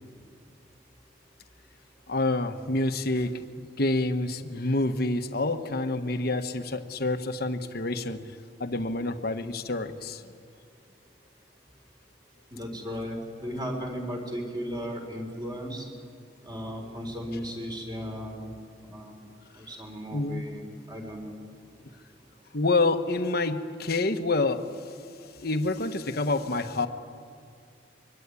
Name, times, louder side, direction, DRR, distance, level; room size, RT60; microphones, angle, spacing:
voice 1, 2.1-8.2 8.6-10.2 20.1-20.4 22.5-24.7 25.4-26.9, left 2 dB, 55° left, 7 dB, 1.2 m, -27 dB
voice 2, 12.5-15.9 16.4-18.5 18.8-19.2 19.6-21.3, equal, 25° right, 2 dB, 4.3 m, -36 dB
24.0 x 23.5 x 9.7 m, 2.2 s
head